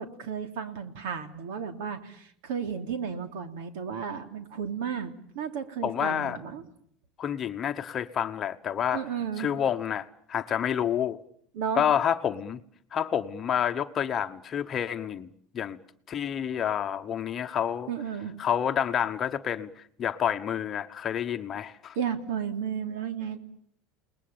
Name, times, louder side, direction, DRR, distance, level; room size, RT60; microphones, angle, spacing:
voice 1, 0.0-6.6 8.9-9.5 11.5-11.8 17.9-18.4 21.9-23.4, right 7 dB, 80° right, 9 dB, 3.2 m, -33 dB
voice 2, 5.8-6.4 7.2-9.0 9.4-11.2 11.8-12.6 12.9-15.3 15.5-15.8 16.1-17.9 18.4-22.0, left 9 dB, 25° left, 7 dB, 1.0 m, -29 dB
30.0 x 20.0 x 8.7 m, 0.65 s
cardioid pair, 165°, 0 cm